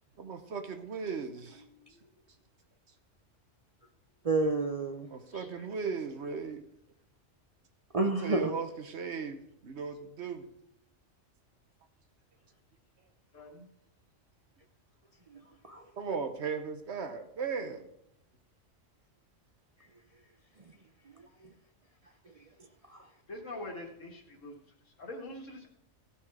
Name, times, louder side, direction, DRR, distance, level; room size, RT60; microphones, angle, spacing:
voice 1, 0.2-1.6 5.1-6.6 8.0-10.5 16.0-17.9, right 5 dB, 60° right, 1.2 m, -37 dB
voice 2, 4.2-5.1 7.9-8.5 15.3-15.8 21.1-21.2 22.9-23.1, right 3 dB, 40° right, 0.5 m, -30 dB
voice 3, 13.3-13.7 23.3-24.5 25.0-25.7, left 1 dB, 80° left, 2.1 m, -43 dB
16.0 x 5.6 x 4.8 m
omnidirectional pair, 1.3 m